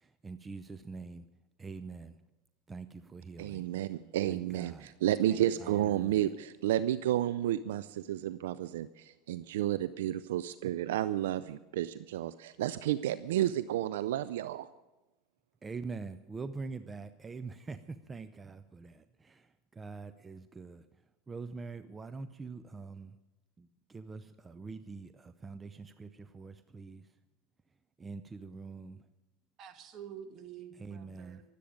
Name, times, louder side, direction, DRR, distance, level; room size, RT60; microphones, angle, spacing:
voice 1, 0.2-1.2 1.6-2.1 2.7-3.7 4.2-4.9 5.6-6.3 15.6-19.5 19.8-20.8 21.3-23.1 23.6-27.0 28.0-29.0 30.7-31.4, right 4 dB, 20° right, 12 dB, 0.6 m, -44 dB
voice 2, 3.4-14.7, right 12 dB, 75° right, 14 dB, 0.4 m, -31 dB
voice 3, 5.3-5.9 29.6-31.4, right 8 dB, 45° right, 6 dB, 2.0 m, -48 dB
24.0 x 8.5 x 5.1 m, 1.1 s
hypercardioid pair, 90°, 0 cm